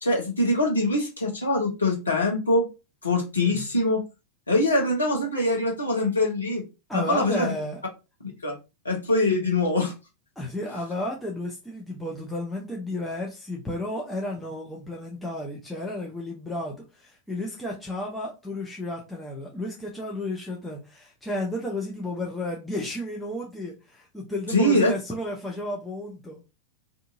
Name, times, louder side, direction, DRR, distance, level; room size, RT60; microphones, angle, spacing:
voice 1, 0.0-2.7 3.0-4.0 4.5-6.6 6.9-7.5 8.4-8.6 8.8-9.9 24.5-24.9, left 1 dB, 75° left, 0.8 m, -23 dB
voice 2, 6.9-7.8 10.4-26.5, left 1 dB, 5° left, 0.7 m, -32 dB
2.6 x 2.5 x 2.5 m
figure-of-eight pair, 90°, 0 cm